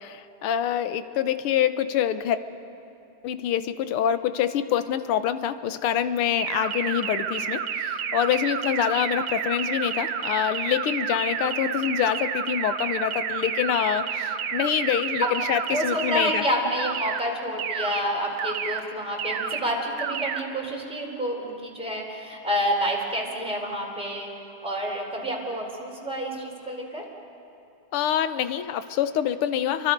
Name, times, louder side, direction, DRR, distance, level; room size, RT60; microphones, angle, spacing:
voice 1, 0.0-2.4 3.2-16.4 27.9-29.9, left 10 dB, 80° left, 11 dB, 1.8 m, -26 dB
sound 1, 6.4-16.4 16.8-17.2 17.6-18.0 18.4-18.8 19.2-19.6 20.0-20.4, right 8 dB, 85° right, 1.9 m, -30 dB
voice 2, 15.7-24.3 24.6-27.0, equal, ahead, -2 dB, 3.9 m, -28 dB
29.5 x 24.0 x 5.3 m, 2.7 s
omnidirectional pair, 2.4 m